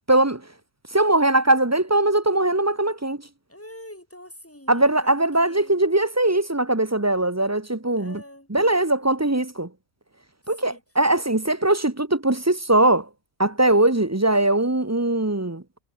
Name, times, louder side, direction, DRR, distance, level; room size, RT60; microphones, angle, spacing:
voice 1, 0.1-0.4 0.9-3.2 4.7-8.2 8.5-9.7 10.5-13.1 13.4-15.6, right 2 dB, 15° right, 1.0 m, -20 dB
voice 2, 3.5-5.8 8.0-8.5 10.4-10.8, left 1 dB, 10° left, 4.1 m, -44 dB
omnidirectional pair, 1.3 m